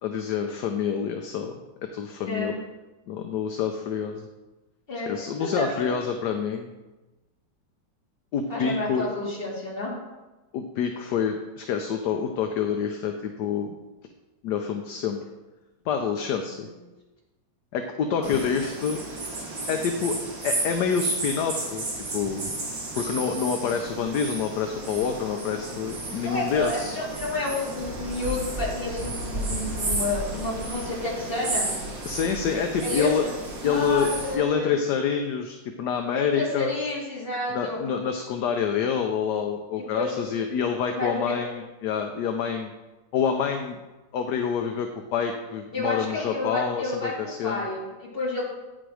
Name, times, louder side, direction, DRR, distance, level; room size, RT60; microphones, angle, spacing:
voice 1, 0.0-1.6 1.9-2.5 3.1-4.3 5.1-6.7 8.3-9.0 10.5-13.7 14.4-15.3 15.9-16.7 17.7-19.0 19.7-20.2 20.4-21.9 22.1-22.4 23.0-27.0 32.0-33.2 33.6-34.1 34.3-36.7 37.5-42.7 43.1-43.8 44.1-47.7, left 7 dB, 70° left, 4 dB, 1.2 m, -27 dB
voice 2, 2.2-2.6 4.9-5.9 8.5-10.0 16.0-16.2 18.2-18.4 26.2-31.7 32.5-33.3 33.6-34.7 36.1-37.8 39.8-40.2 40.9-41.3 45.7-48.5, left 2 dB, 30° left, -5 dB, 2.5 m, -30 dB
sound 1, 18.2-34.4, right 2 dB, 85° right, 2.5 m, -33 dB
9.0 x 6.0 x 4.8 m, 1.1 s
omnidirectional pair, 2.0 m